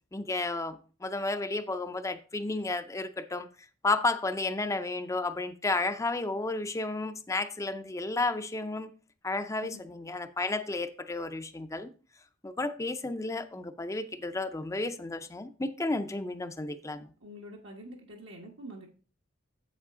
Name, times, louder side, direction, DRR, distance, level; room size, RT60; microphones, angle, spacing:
voice 1, 0.1-3.5 3.8-8.9 9.2-11.9 12.4-17.1, left 2 dB, 15° left, 0.5 m, -32 dB
voice 2, 17.2-18.9, right 1 dB, 75° right, 1.2 m, -46 dB
7.6 x 7.4 x 3.6 m
head